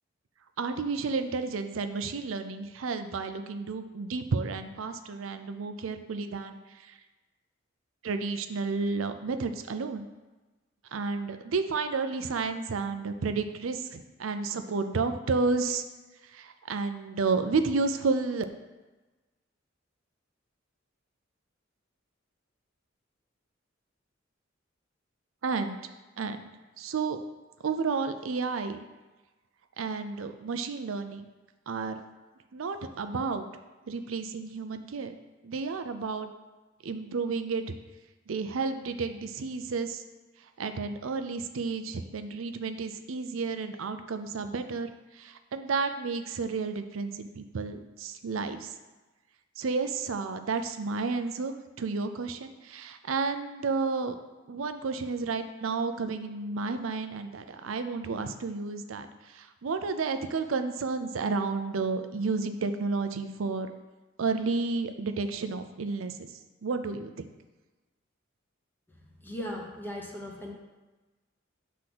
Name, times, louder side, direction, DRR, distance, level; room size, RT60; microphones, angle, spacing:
voice 1, 0.6-7.0 8.0-10.1 10.9-15.8 16.3-18.4 25.4-25.8 26.2-26.5 26.8-27.2 27.6-28.8 29.8-31.3 31.7-32.0 32.5-33.5 33.9-35.1 35.4-36.3 36.8-37.8 38.3-40.0 40.6-48.7 49.6-54.2 54.5-63.7 64.2-66.3 66.6-67.1, right 4 dB, 85° right, 8 dB, 0.5 m, -31 dB
voice 2, 69.2-70.5, left 1 dB, 10° left, -1 dB, 1.1 m, -37 dB
7.7 x 3.7 x 6.0 m, 1.2 s
head